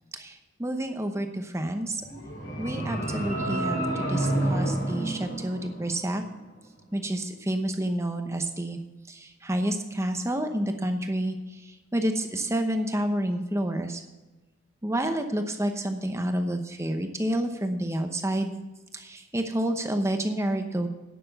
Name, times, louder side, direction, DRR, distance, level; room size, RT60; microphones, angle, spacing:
voice 1, 0.1-2.0 2.6-6.2 6.9-8.8 9.1-11.6 11.9-14.0 14.8-18.5 18.9-20.9, right 1 dB, 15° right, 6 dB, 0.9 m, -29 dB
sound 1, 2.0-6.2, right 1 dB, 60° left, 3.8 m, -29 dB
10.0 x 6.8 x 6.8 m, 1.1 s
head